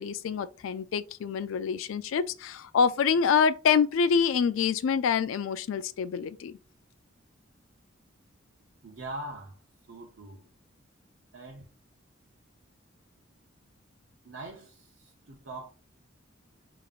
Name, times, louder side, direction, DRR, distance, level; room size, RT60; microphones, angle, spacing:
voice 1, 0.0-6.6, left 6 dB, 85° left, 0.3 m, -26 dB
voice 2, 8.8-9.6 9.9-10.5 11.3-11.7 14.2-15.7, right 2 dB, 75° right, 0.7 m, -42 dB
5.1 x 2.9 x 2.4 m
head